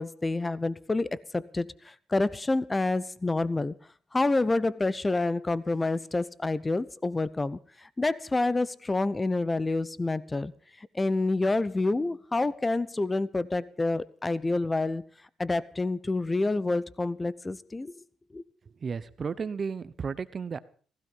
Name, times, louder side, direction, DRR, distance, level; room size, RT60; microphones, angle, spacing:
voice 1, 0.0-3.7 4.1-7.6 8.0-10.5 10.9-15.0 15.4-17.9 18.3-18.4, left 2 dB, 20° left, 0.9 m, -28 dB
voice 2, 18.8-20.6, right 5 dB, 40° right, 1.0 m, -33 dB
16.0 x 15.5 x 5.6 m
cardioid pair, 90°, 0 cm